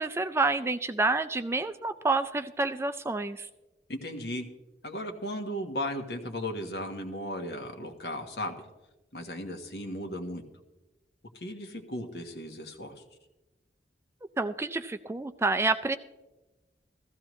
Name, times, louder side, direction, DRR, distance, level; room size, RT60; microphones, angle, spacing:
voice 1, 0.0-3.5 14.4-16.0, right 3 dB, 15° right, 10 dB, 0.3 m, -28 dB
voice 2, 3.9-4.5 4.8-8.6 9.1-10.4 11.3-13.0, left 1 dB, 65° left, 4 dB, 1.3 m, -36 dB
15.0 x 14.5 x 3.1 m, 1.1 s
head